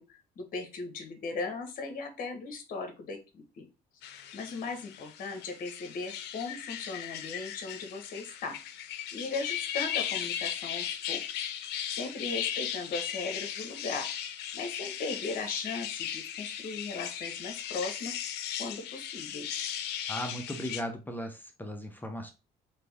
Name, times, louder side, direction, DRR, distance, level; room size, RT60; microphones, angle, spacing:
voice 1, 0.0-3.7 4.3-8.6 9.1-11.4 11.9-14.1 14.5-18.1 18.6-19.5, left 3 dB, 55° left, 7 dB, 0.9 m, -38 dB
sound 1, 4.0-20.8, left 10 dB, 80° left, 0.5 m, -37 dB
voice 2, 20.1-22.3, equal, 10° left, 4 dB, 0.6 m, -37 dB
3.3 x 2.7 x 3.2 m, 0.30 s
cardioid pair, 110°, 17 cm